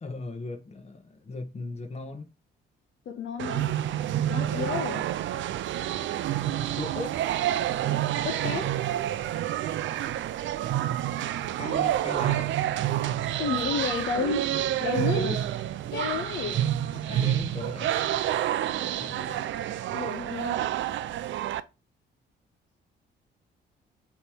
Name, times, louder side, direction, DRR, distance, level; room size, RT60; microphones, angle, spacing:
voice 1, 0.0-2.3 6.8-7.2 11.6-12.6 15.1-15.5 16.4-17.9 18.8-19.5, left 2 dB, 30° left, 1.5 m, -38 dB
voice 2, 3.0-3.7 4.3-5.1 8.2-8.8 13.4-14.5 14.8-15.4 15.9-16.7 19.9-20.7, left 6 dB, 70° left, 1.4 m, -31 dB
sound 1, 3.4-21.6, right 12 dB, 75° right, 0.6 m, -28 dB
8.2 x 3.2 x 5.1 m
cardioid pair, 90°, 20 cm